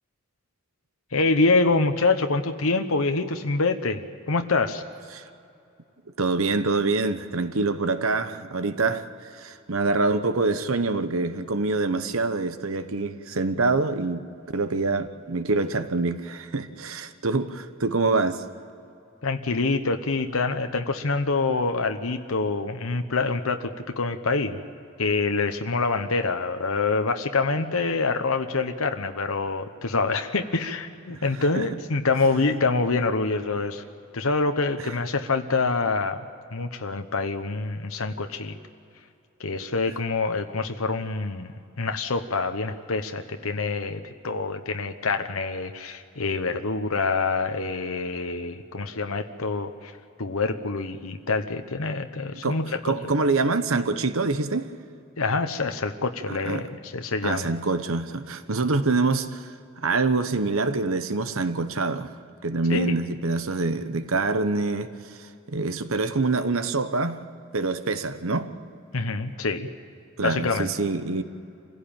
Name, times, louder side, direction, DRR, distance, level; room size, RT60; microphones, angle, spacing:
voice 1, 1.1-4.8 19.2-24.6 25.0-33.8 34.1-36.2 36.5-38.6 39.4-41.5 41.8-49.9 50.2-52.9 55.2-57.5 62.7-62.9 68.9-69.7 70.2-70.7, left 3 dB, 85° left, 1.1 m, -26 dB
voice 2, 6.2-14.2 14.5-18.4 31.1-31.2 31.5-31.6 34.8-34.9 52.4-52.6 52.8-54.7 56.3-56.6 57.2-59.5 59.8-62.1 62.4-64.9 65.5-67.2 67.5-68.5 70.2-71.2, right 3 dB, 80° right, 1.1 m, -25 dB
26.0 x 16.5 x 8.9 m
head